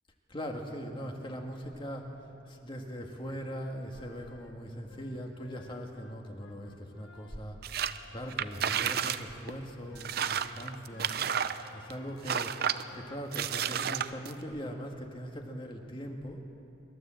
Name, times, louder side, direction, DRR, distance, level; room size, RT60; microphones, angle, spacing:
voice 1, 0.3-2.1 2.5-7.6 8.1-11.1 11.7-12.6 12.9-16.4, equal, 25° left, 2 dB, 1.8 m, -40 dB
sound 1, 3.8-14.6, left 3 dB, 85° left, 1.3 m, -57 dB
sound 2, 7.6-8.0 8.3-9.2 9.5-9.6 10.0-11.9 12.2-12.8 13.3-14.3, right 8 dB, 55° right, 0.6 m, -31 dB
28.0 x 12.5 x 7.7 m, 2.9 s
head